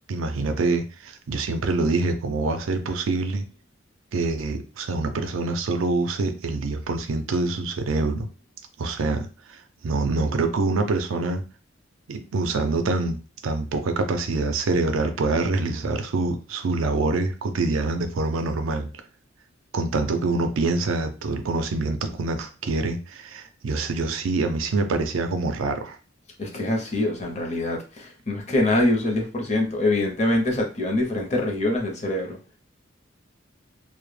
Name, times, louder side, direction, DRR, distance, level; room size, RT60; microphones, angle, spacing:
voice 1, 0.1-3.5 4.1-8.3 8.8-9.6 9.8-11.4 12.1-13.2 13.4-18.9 19.7-26.0, right 3 dB, 90° right, 6 dB, 0.4 m, -25 dB
voice 2, 26.4-32.4, left 1 dB, 35° left, 1 dB, 0.5 m, -24 dB
2.1 x 2.0 x 3.1 m, 0.34 s
head